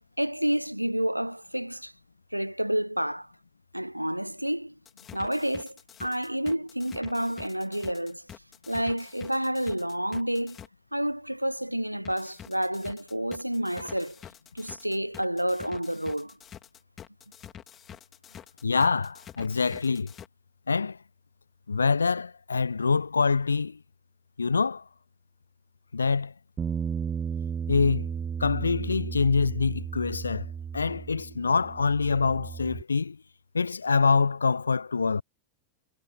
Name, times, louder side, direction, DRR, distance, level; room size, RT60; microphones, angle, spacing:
voice 1, 0.2-1.9 2.3-3.3 3.7-4.7 5.1-8.3 8.7-10.6 10.9-14.2 14.5-16.4, right 1 dB, 90° right, 0.4 m, -29 dB
sound 1, 4.9-10.7 12.1-20.3, left 9 dB, 25° left, 3.4 m, -47 dB
voice 2, 18.6-20.1 20.7-21.0 21.7-23.8 24.4-24.8 25.9-26.3 27.7-28.1 28.4-33.2 33.5-35.2, left 4 dB, 75° left, 0.4 m, -25 dB
Bass guitar, 26.6-32.8, right 7 dB, 20° right, 0.3 m, -34 dB
figure-of-eight pair, 90°, 0 cm